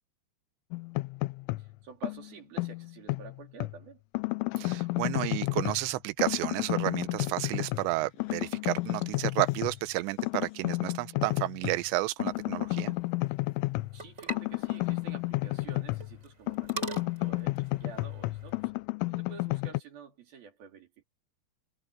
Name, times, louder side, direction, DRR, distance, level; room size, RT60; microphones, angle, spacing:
sound 1, 0.7-1.7 2.0-3.8 4.1-5.9 6.2-7.9 8.2-9.8 10.2-11.8 12.2-16.2 16.5-19.8, left 23 dB, 85° left, 3.1 m, -32 dB
voice 1, 1.6-4.0 13.9-18.7 19.1-21.0, right 6 dB, 50° right, 4.8 m, -49 dB
voice 2, 4.6-13.0, right 18 dB, 75° right, 2.9 m, -31 dB
sound 2, 7.4-12.8, left 5 dB, 65° left, 8.9 m, -64 dB
sound 3, 12.3-18.7, right 3 dB, 20° right, 3.4 m, -45 dB
omnidirectional pair, 5.7 m